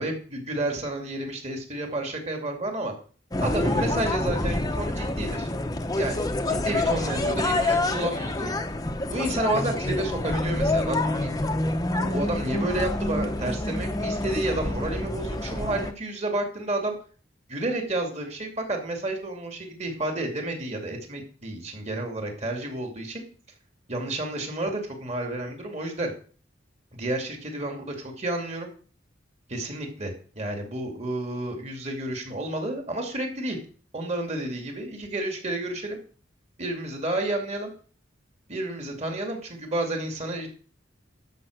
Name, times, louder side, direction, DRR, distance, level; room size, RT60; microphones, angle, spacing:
voice 1, 0.0-2.9 3.4-5.5 5.9-8.5 9.0-11.3 12.0-16.9 17.5-23.2 23.9-26.1 26.9-28.7 29.5-33.6 33.9-36.0 36.6-37.7 38.5-40.5, right 1 dB, 35° right, 3 dB, 2.4 m, -30 dB
sound 1, 3.3-15.9, left 2 dB, 20° left, 0.8 m, -27 dB
12.0 x 5.6 x 6.4 m, 0.42 s
head